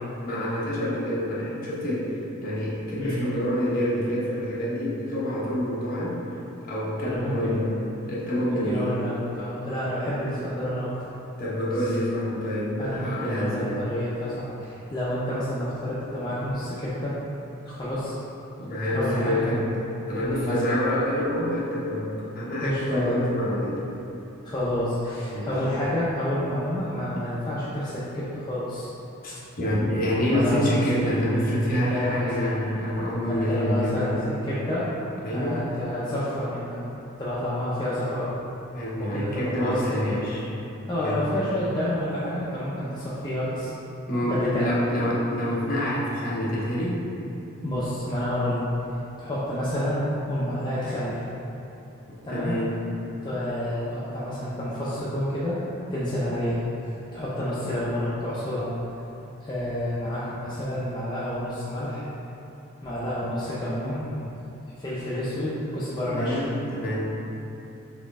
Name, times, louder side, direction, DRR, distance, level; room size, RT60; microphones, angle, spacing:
voice 1, 0.2-2.1 2.4-6.2 6.6-7.7 8.1-8.9 11.4-13.8 18.6-19.7 20.1-23.8 25.3-25.5 29.2-34.2 35.2-35.6 38.7-40.4 41.0-41.2 44.1-47.0 52.3-52.8 66.0-67.1, equal, 45° left, -7 dB, 0.9 m, -27 dB
voice 2, 3.0-3.3 7.0-7.9 8.5-10.9 12.8-17.1 17.6-18.1 18.9-19.6 20.1-20.6 22.6-23.3 24.4-28.9 30.3-30.8 31.7-32.3 33.3-34.9 35.3-36.8 37.2-38.4 39.0-40.2 40.9-43.7 44.2-44.8 47.6-48.7 49.2-51.2 52.2-52.5 53.2-55.6 55.9-58.7 59.4-62.1 62.8-64.1 64.8-66.4, left 1 dB, 20° left, -10 dB, 0.5 m, -29 dB
4.2 x 3.1 x 3.6 m, 2.9 s
head